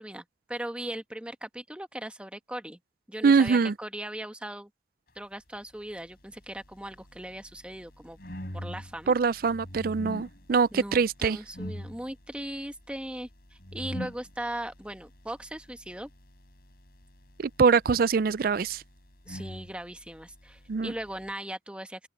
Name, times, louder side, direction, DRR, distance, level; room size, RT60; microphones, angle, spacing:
voice 1, 0.0-2.8 3.1-4.7 5.1-8.2 8.5-9.1 10.7-16.1 19.3-22.1, right 1 dB, 5° right, 1.1 m, -39 dB
voice 2, 3.2-3.7 9.1-11.4 17.4-18.8 20.7-20.9, right 5 dB, 50° right, 0.4 m, -23 dB
sound 1, 5.9-21.3, equal, 55° left, 4.3 m, -45 dB
open air
head